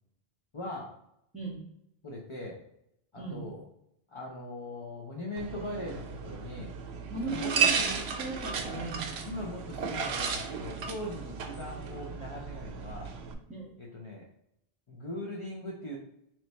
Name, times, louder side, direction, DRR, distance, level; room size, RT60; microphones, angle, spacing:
voice 1, 0.5-0.9 2.0-2.6 3.1-3.6 4.1-6.7 7.1-7.6 9.0-13.1 13.8-14.2 14.9-16.0, left 1 dB, 35° left, -3 dB, 0.6 m, -40 dB
sound 1, 5.4-13.3, right 6 dB, 80° right, 0.8 m, -34 dB
voice 2, 7.1-9.1 13.5-13.7, right 3 dB, 5° right, -5 dB, 1.2 m, -37 dB
3.1 x 3.1 x 4.1 m, 0.77 s
omnidirectional pair, 1.0 m